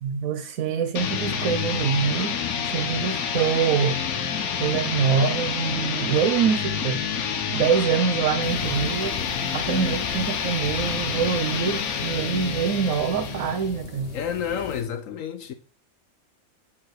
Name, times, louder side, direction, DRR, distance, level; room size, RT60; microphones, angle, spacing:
voice 1, 0.0-2.4 2.7-4.0 4.6-9.3 9.5-14.2, right 7 dB, 75° right, 1.1 m, -25 dB
sound 1, 1.0-13.8, left 7 dB, 85° left, 1.3 m, -28 dB
Motorcycle, 3.7-7.0, right 1 dB, ahead, 0.8 m, -43 dB
sound 2, 8.4-14.8, left 4 dB, 45° left, 1.3 m, -38 dB
voice 2, 14.1-15.5, left 8 dB, 70° left, 1.1 m, -30 dB
8.6 x 3.5 x 6.4 m
omnidirectional pair, 1.5 m